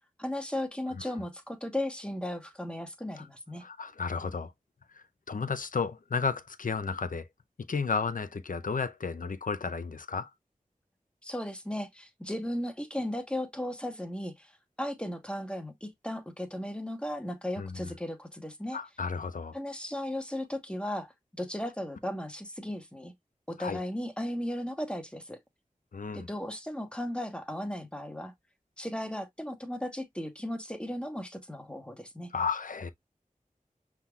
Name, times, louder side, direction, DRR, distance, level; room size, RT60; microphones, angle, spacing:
voice 1, 0.2-3.6 11.2-14.5 14.8-18.8 19.5-21.1 21.4-23.1 23.5-25.4 26.1-28.3 28.8-32.3, left 1 dB, 5° left, 1.1 m, -36 dB
voice 2, 3.6-4.5 4.9-7.3 7.7-10.3 17.6-17.9 18.7-19.6 23.6-23.8 25.9-26.3 32.3-32.9, left 5 dB, 70° left, 0.6 m, -33 dB
5.6 x 3.5 x 2.3 m
wide cardioid pair, 50°, 14 cm